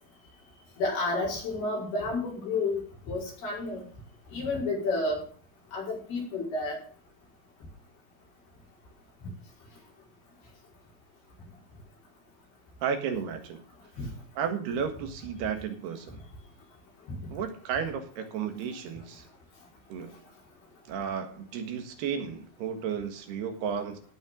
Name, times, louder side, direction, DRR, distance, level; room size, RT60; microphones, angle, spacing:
voice 1, 0.8-2.8 3.1-3.8 4.3-5.2 5.7-6.8 14.0-14.1, left 2 dB, 80° left, -2 dB, 7.0 m, -30 dB
voice 2, 12.8-13.6 14.4-16.2 17.3-19.3 19.9-20.3 20.9-24.0, right 7 dB, 85° right, 6 dB, 3.8 m, -33 dB
17.0 x 9.0 x 3.8 m, 0.43 s
omnidirectional pair, 4.5 m